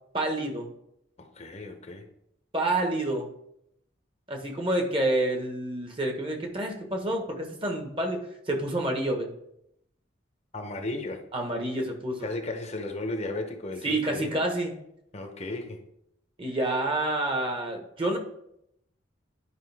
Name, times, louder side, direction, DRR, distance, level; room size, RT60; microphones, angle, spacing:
voice 1, 0.1-0.7 2.5-3.3 4.3-8.2 8.5-9.3 11.3-12.3 13.8-14.7 16.4-18.2, right 1 dB, 25° right, 3 dB, 1.2 m, -28 dB
voice 2, 1.2-2.0 10.5-11.2 12.2-14.3 15.1-15.8, left 2 dB, 35° left, 4 dB, 0.8 m, -34 dB
11.0 x 5.2 x 3.4 m, 0.77 s
head